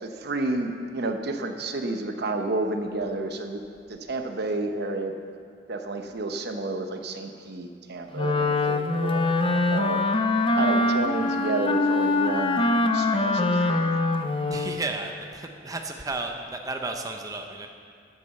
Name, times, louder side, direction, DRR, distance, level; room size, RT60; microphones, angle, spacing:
voice 1, 0.0-3.6 3.9-5.1 5.7-10.0 10.5-12.7 12.9-14.0, right 2 dB, 60° right, 6 dB, 0.9 m, -30 dB
Wind instrument woodwind instrument, 8.1-14.8, left 2 dB, 30° left, 0.5 m, -23 dB
voice 2, 14.5-17.7, right 3 dB, 20° right, 3 dB, 0.6 m, -33 dB
9.5 x 8.4 x 6.9 m, 2.3 s
head